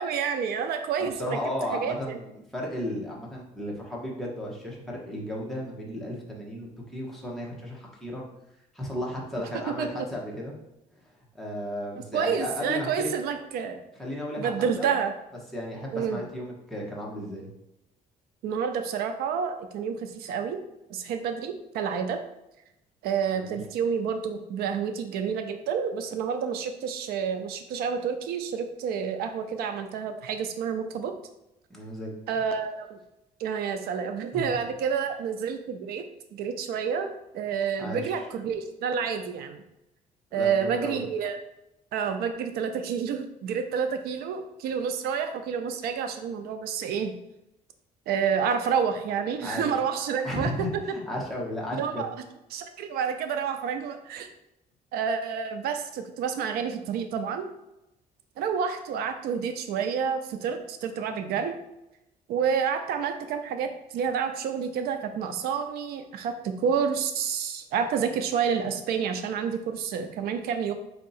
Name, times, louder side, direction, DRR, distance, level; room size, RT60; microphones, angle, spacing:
voice 1, 0.0-1.4 1.7-2.2 9.8-10.1 12.1-13.8 14.4-15.1 15.9-16.2 18.4-20.6 20.9-22.2 23.0-31.1 32.3-33.0 33.4-36.0 36.3-39.6 40.3-41.4 41.9-47.1 48.1-50.8 51.8-52.1 52.5-54.3 54.9-57.5 58.4-61.6 62.3-70.7, right 7 dB, 85° right, 7 dB, 0.5 m, -29 dB
voice 2, 1.0-8.2 8.7-10.5 11.3-13.1 14.0-15.0 15.5-17.5 23.3-23.6 31.7-32.1 34.3-34.5 37.8-38.2 40.3-41.0 49.4-49.7 50.2-52.1, left 1 dB, ahead, -4 dB, 1.0 m, -34 dB
4.6 x 2.8 x 4.0 m, 0.89 s
cardioid pair, 145°, 16 cm